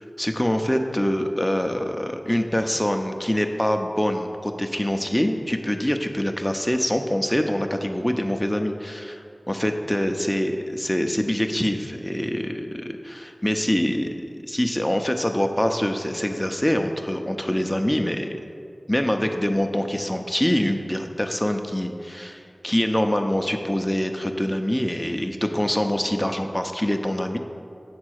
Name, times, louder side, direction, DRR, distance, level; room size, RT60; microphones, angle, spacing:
voice 1, 0.2-14.1 14.4-18.4 18.9-27.4, equal, 10° left, 5 dB, 0.6 m, -25 dB
7.5 x 4.0 x 6.3 m, 2.4 s
wide cardioid pair, 65°, 0 cm